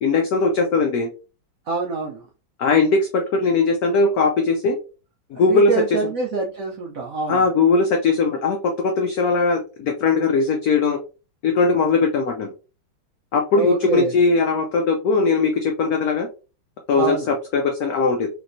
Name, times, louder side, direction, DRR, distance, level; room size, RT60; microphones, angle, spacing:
voice 1, 0.0-1.1 2.6-4.8 5.3-5.7 7.3-11.0 11.4-12.5 13.3-16.3 16.9-18.3, left 4 dB, 85° left, 3 dB, 0.8 m, -19 dB
voice 2, 1.7-2.2 5.3-7.4 13.5-14.1 17.0-17.3, right 3 dB, 75° right, -1 dB, 0.7 m, -25 dB
3.3 x 3.0 x 2.5 m, 0.33 s
omnidirectional pair, 2.2 m